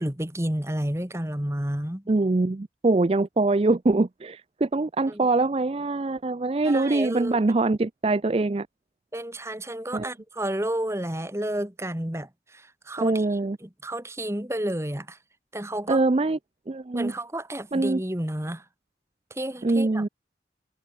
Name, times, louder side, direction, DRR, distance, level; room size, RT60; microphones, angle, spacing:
voice 1, 0.0-2.0 5.1-5.3 6.6-7.4 9.1-13.3 13.6-15.2 15.5-16.0 16.9-18.6 19.3-20.1, right 1 dB, 15° right, 1.8 m, -31 dB
voice 2, 2.1-8.7 9.9-10.1 13.0-13.6 15.9-16.4 16.7-17.1 17.7-18.0 19.6-20.1, right 2 dB, 30° right, 0.4 m, -23 dB
head